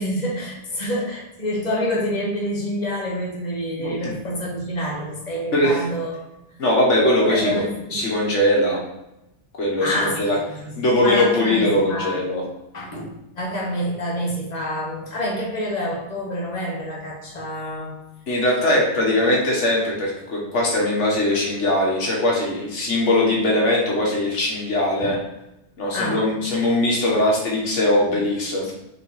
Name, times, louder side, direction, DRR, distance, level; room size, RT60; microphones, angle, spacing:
voice 1, 0.0-6.3 7.3-8.0 9.8-12.2 12.7-13.1 13.3-18.0 25.0-25.1 25.9-26.2, equal, 35° left, -3 dB, 1.7 m, -27 dB
voice 2, 5.5-5.8 6.6-7.6 7.9-8.8 9.6-10.4 10.8-12.4 18.3-25.2 25.8-28.7, left 1 dB, 90° left, -3 dB, 1.9 m, -20 dB
5.8 x 4.6 x 4.9 m, 0.89 s
omnidirectional pair, 1.2 m